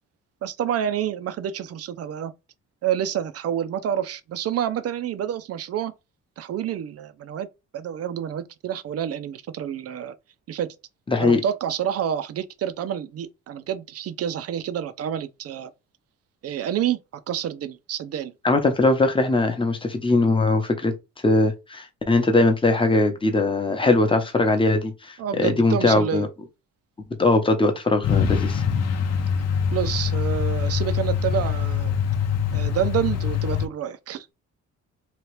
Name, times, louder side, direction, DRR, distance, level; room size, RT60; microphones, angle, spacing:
voice 1, 0.4-2.3 2.8-5.9 6.4-7.5 7.7-10.1 10.5-10.8 11.2-15.7 16.4-17.0 17.3-18.3 25.2-26.3 29.7-31.9 32.5-34.3, right 9 dB, 55° right, 0.5 m, -28 dB
voice 2, 11.1-11.4 18.4-20.9 21.2-26.3 27.2-28.6, left 2 dB, 15° left, 0.8 m, -20 dB
Truck, 28.0-33.7, left 7 dB, 55° left, 0.7 m, -24 dB
2.9 x 2.4 x 3.1 m
cardioid pair, 90°, 30 cm